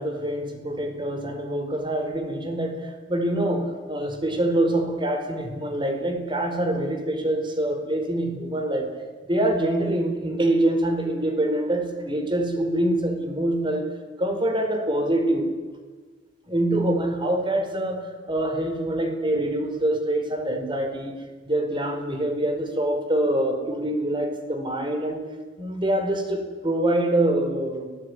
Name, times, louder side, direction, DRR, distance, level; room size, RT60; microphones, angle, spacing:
voice 1, 0.0-8.9 9.3-13.9 14.2-15.5 16.5-25.2 25.6-27.9, right 1 dB, 25° right, 6 dB, 4.8 m, -25 dB
29.5 x 19.5 x 9.9 m, 1.4 s
head